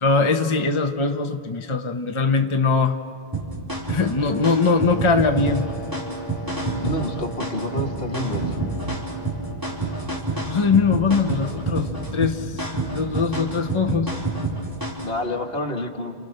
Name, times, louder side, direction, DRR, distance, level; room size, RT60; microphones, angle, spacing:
voice 1, 0.0-3.0 3.9-5.7 10.5-14.1, left 4 dB, 30° left, 5 dB, 1.0 m, -21 dB
sound 1, 3.3-15.1, right 3 dB, 20° right, 4.1 m, -28 dB
sound 2, 4.3-12.6, left 2 dB, 50° left, 1.5 m, -39 dB
voice 2, 6.8-8.7 15.0-16.1, left 1 dB, 65° left, 4 dB, 2.0 m, -28 dB
29.5 x 29.5 x 6.5 m, 2.3 s
omnidirectional pair, 1.1 m